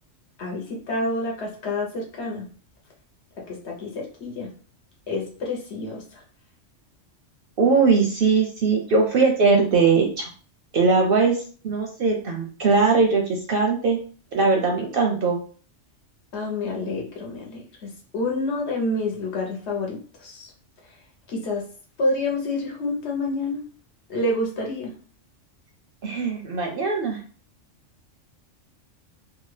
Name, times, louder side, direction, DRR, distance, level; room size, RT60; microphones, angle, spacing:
voice 1, 0.4-2.5 3.4-4.5 5.1-6.2 16.3-20.5 21.3-21.7 22.0-23.6 24.1-24.9, left 2 dB, 65° left, 0 dB, 1.1 m, -28 dB
voice 2, 7.6-10.3 10.7-11.4 11.6-14.0 14.3-15.4 26.0-27.2, right 4 dB, 60° right, 1 dB, 0.6 m, -20 dB
2.8 x 2.2 x 3.1 m, 0.41 s
omnidirectional pair, 1.3 m